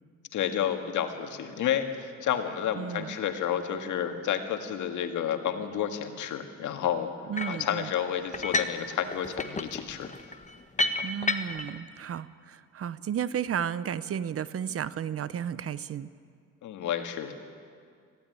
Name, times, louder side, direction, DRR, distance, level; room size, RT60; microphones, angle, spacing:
voice 1, 0.3-7.1 7.5-10.1 10.8-11.0 16.6-17.3, left 9 dB, 75° left, 6 dB, 1.9 m, -30 dB
voice 2, 2.8-3.2 7.3-7.9 11.0-16.1, right 8 dB, 50° right, 16 dB, 0.8 m, -33 dB
sound 1, 7.4-7.7 8.3-8.8 9.1-11.7, left 2 dB, 25° left, 1.4 m, -30 dB
20.5 x 15.5 x 9.9 m, 2.2 s
cardioid pair, 90°, 30 cm